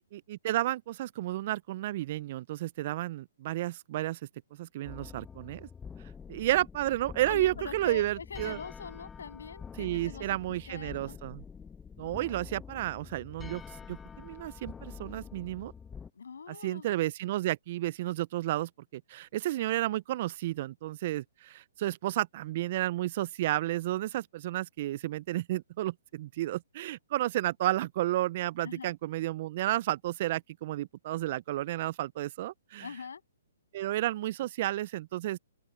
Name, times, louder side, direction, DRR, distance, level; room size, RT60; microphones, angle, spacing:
voice 1, 0.3-4.2 4.6-5.7 6.3-8.6 9.8-11.4 12.0-15.7 16.5-32.9 33.7-35.4, right 15 dB, 45° right, 0.3 m, -32 dB
sound 1, 4.8-16.1, left 6 dB, 10° left, 1.0 m, -46 dB
voice 2, 7.3-11.2 12.0-12.2 16.1-16.9 28.6-28.9 32.8-33.2, left 6 dB, 80° left, 7.4 m, -43 dB
open air
hypercardioid pair, 140°, 0 cm